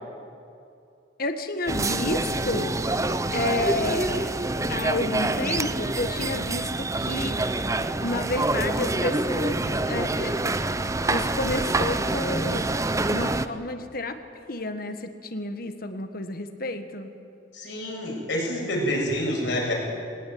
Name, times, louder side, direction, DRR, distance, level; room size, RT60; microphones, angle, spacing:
voice 1, 1.2-2.7 3.3-4.3 4.7-7.7 8.0-10.5 11.0-12.7 13.1-14.2 14.5-17.1, left 2 dB, 55° left, 8 dB, 1.6 m, -30 dB
sound 1, 1.7-13.5, right 2 dB, 15° right, 0.6 m, -26 dB
voice 2, 17.5-19.7, equal, 75° left, -2 dB, 7.3 m, -27 dB
20.0 x 18.5 x 9.5 m, 2.5 s
head